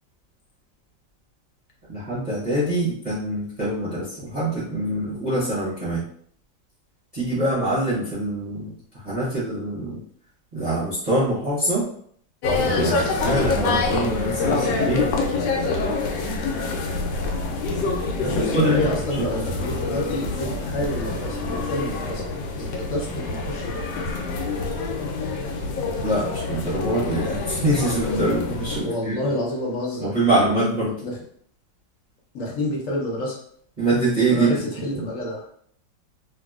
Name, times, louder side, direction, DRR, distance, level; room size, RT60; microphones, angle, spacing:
voice 1, 1.9-6.0 7.1-10.0 10.5-11.9 12.6-15.2 18.5-18.8 19.2-19.3 26.0-29.3 30.0-30.9 33.8-34.6 34.9-35.1, right 1 dB, 40° right, -10 dB, 0.6 m, -24 dB
sound 1, 12.4-28.8, left 3 dB, 90° left, 1.3 m, -26 dB
voice 2, 18.2-22.2 22.6-23.8 28.8-30.2 31.0-31.2 32.3-33.4 34.3-35.5, left 1 dB, 60° left, -2 dB, 0.9 m, -28 dB
3.0 x 2.6 x 2.3 m, 0.62 s
omnidirectional pair, 2.0 m